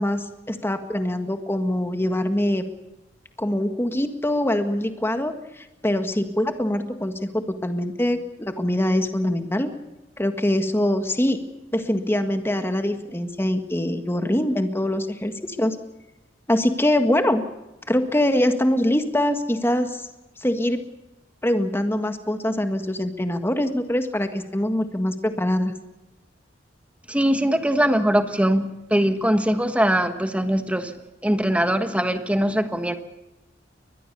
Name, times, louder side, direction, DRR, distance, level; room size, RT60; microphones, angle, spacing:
voice 1, 0.0-2.6 3.4-9.7 10.2-11.4 11.7-15.8 16.5-17.4 17.9-20.0 20.4-20.8 21.4-25.7, left 1 dB, 15° left, 7 dB, 1.7 m, -23 dB
voice 2, 27.1-30.9 31.2-32.9, equal, 5° right, 8 dB, 1.4 m, -21 dB
23.0 x 20.5 x 6.9 m, 1.0 s
head